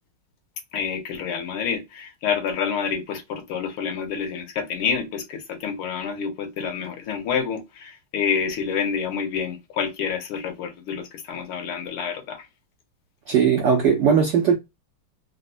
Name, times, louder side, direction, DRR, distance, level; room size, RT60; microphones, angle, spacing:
voice 1, 0.7-12.5, left 6 dB, 80° left, 1.7 m, -28 dB
voice 2, 13.3-14.6, right 7 dB, 80° right, 1.0 m, -18 dB
4.0 x 2.1 x 2.6 m
omnidirectional pair, 2.4 m